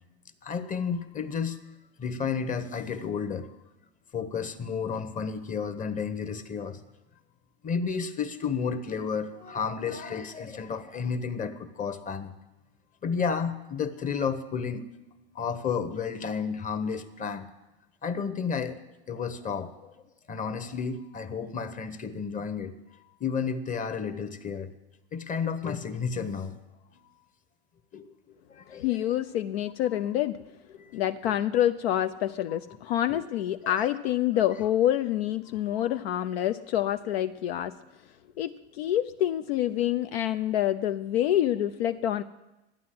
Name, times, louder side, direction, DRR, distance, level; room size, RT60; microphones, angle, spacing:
voice 1, 0.4-1.6 2.0-3.5 4.1-6.8 7.6-12.3 13.0-14.9 15.3-17.5 18.0-18.8 19.1-20.0 20.3-22.7 23.2-24.7 25.1-26.6 26.9-27.0 27.9-28.1 28.5-29.0 30.7-30.9 31.2-31.4 33.1-33.2 33.8-33.9 35.7-35.9, left 6 dB, 25° left, 10 dB, 1.0 m, -32 dB
voice 2, 28.8-30.4 30.9-37.7 38.4-42.2, left 12 dB, 70° left, 10 dB, 0.6 m, -27 dB
11.5 x 9.6 x 7.7 m, 1.0 s
hypercardioid pair, 105°, 33 cm